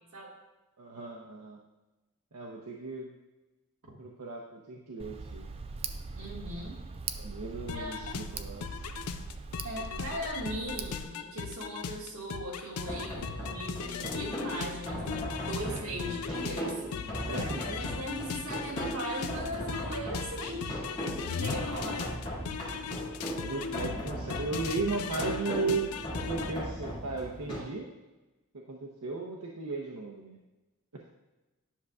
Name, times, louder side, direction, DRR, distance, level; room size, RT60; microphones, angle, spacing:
voice 1, 0.8-1.6 2.3-3.1 4.0-5.5 7.2-8.7 15.7-15.8 17.3-17.8 23.4-25.9 26.2-27.9 28.5-30.4, right 3 dB, 90° right, -1 dB, 0.8 m, -36 dB
Tick, 5.0-11.0, right 4 dB, 25° right, 0.3 m, -41 dB
voice 2, 6.1-6.8 7.7-8.2 9.6-16.8 17.1-17.2 17.7-20.7 21.3-22.2, right 1 dB, 65° right, -3 dB, 1.8 m, -39 dB
sound 1, 7.7-26.5, left 6 dB, 85° left, 0.4 m, -38 dB
sound 2, 12.8-27.6, equal, 20° left, 2.1 m, -38 dB
10.0 x 6.5 x 2.4 m, 1.1 s
head